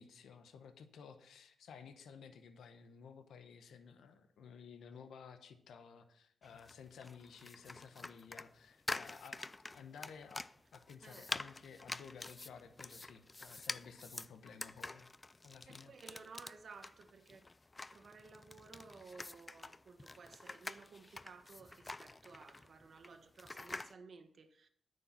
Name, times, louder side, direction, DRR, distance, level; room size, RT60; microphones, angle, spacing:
voice 1, 0.0-10.4 10.7-15.1 15.4-15.9, left 6 dB, 80° left, 0.9 m, -55 dB
sound 1, 6.4-23.9, left 2 dB, 30° left, 0.4 m, -47 dB
voice 2, 11.0-11.3 15.6-17.4 17.9-24.7, right 4 dB, 60° right, 1.3 m, -56 dB
9.4 x 6.5 x 5.9 m
cardioid pair, 55°, 0 cm